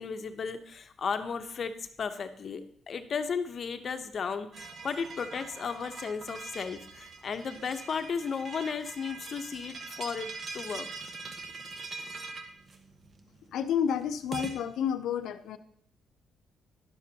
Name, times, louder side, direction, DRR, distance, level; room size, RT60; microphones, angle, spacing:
voice 1, 0.0-1.7 2.0-10.3 10.5-10.9, left 6 dB, 50° left, 8 dB, 0.8 m, -34 dB
sound 1, 4.5-14.5, right 4 dB, 45° right, 1.1 m, -43 dB
voice 2, 13.5-15.6, left 8 dB, 75° left, 10 dB, 0.6 m, -30 dB
11.0 x 6.8 x 2.8 m, 0.66 s
cardioid pair, 90°, 0 cm